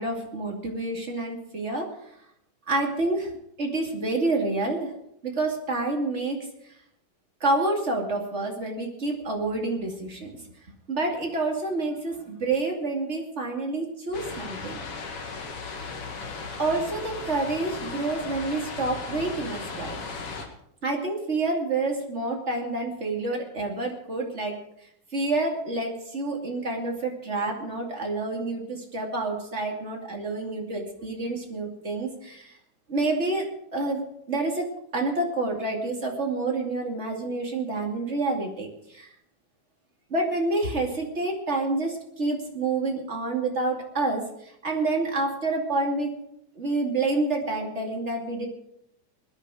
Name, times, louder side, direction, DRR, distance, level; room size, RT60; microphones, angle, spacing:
voice 1, 0.0-1.9 2.7-3.3 3.6-4.9 5.2-6.5 7.4-10.4 10.9-14.8 16.6-20.0 20.8-24.6 25.1-32.5 32.9-39.1 40.1-46.1 46.6-48.5, right 2 dB, 25° right, 0 dB, 2.5 m, -28 dB
sound 1, 14.1-20.5, left 4 dB, 50° left, 2.7 m, -36 dB
21.0 x 10.5 x 4.9 m, 0.75 s
omnidirectional pair, 3.5 m